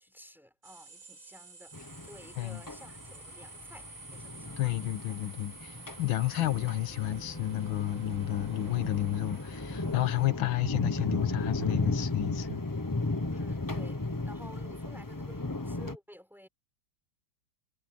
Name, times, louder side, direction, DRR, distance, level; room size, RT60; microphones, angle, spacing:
voice 1, 0.0-4.9 13.3-16.5, equal, ahead, 5.4 m, -53 dB
sound 1, 0.6-10.3, right 4 dB, 65° right, 3.9 m, -51 dB
sound 2, 1.7-16.0, left 2 dB, 15° left, 0.7 m, -36 dB
voice 2, 4.6-12.6, left 14 dB, 90° left, 1.8 m, -31 dB
omnidirectional pair, 2.1 m